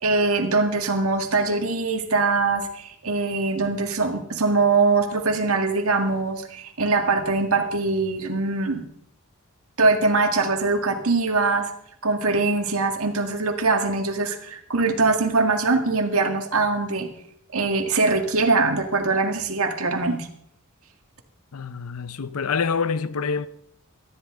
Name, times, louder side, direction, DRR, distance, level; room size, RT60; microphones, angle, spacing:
voice 1, 0.0-8.8 9.8-11.7 12.0-17.1 17.5-20.3, right 3 dB, 80° right, 1.9 m, -22 dB
voice 2, 21.5-23.5, left 5 dB, 90° left, 0.7 m, -26 dB
19.0 x 13.0 x 3.8 m
head